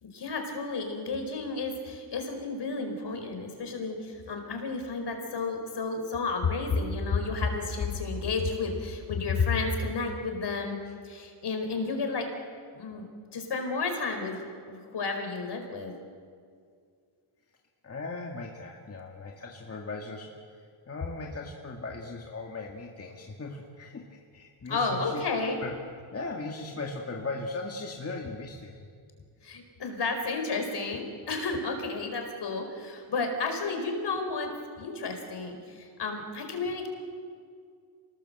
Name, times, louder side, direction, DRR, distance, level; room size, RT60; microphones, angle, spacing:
voice 1, 0.0-10.8 11.0-12.3 12.7-13.1 13.3-15.9 24.7-25.6 29.4-34.5 34.8-36.9, left 4 dB, 55° left, 5 dB, 4.8 m, -31 dB
voice 2, 17.8-25.2 25.6-25.7 26.1-28.9, left 3 dB, 30° left, 0 dB, 2.1 m, -38 dB
27.0 x 19.5 x 8.0 m, 2.2 s
cardioid pair, 125°, 49 cm